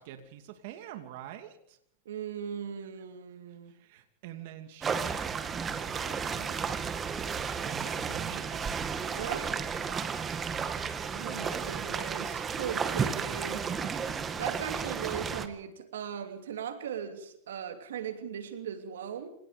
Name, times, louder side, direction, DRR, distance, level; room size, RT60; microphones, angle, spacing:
voice 1, 0.0-1.8 2.9-3.0 3.5-5.3 5.7-6.8 7.5-8.7 13.6-14.4, right 11 dB, 65° right, 7 dB, 2.6 m, -46 dB
voice 2, 2.0-3.7 9.1-9.5 11.1-13.7 14.4-19.3, right 8 dB, 85° right, 8 dB, 2.9 m, -38 dB
sound 1, 4.8-15.5, right 6 dB, 25° right, 2.0 m, -33 dB
27.0 x 18.5 x 5.1 m, 0.69 s
hypercardioid pair, 120°, 0 cm